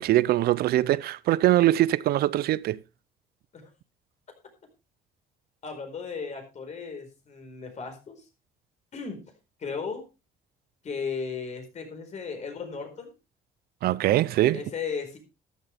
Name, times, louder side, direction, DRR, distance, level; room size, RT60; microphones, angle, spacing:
voice 1, 0.0-2.8 13.8-14.6, right 14 dB, 65° right, 0.5 m, -22 dB
voice 2, 5.6-8.2 8.9-9.3 9.6-10.0 10.8-13.1 14.5-15.2, left 5 dB, 45° left, 4.7 m, -35 dB
13.5 x 11.0 x 3.4 m
cardioid pair, 110°, 17 cm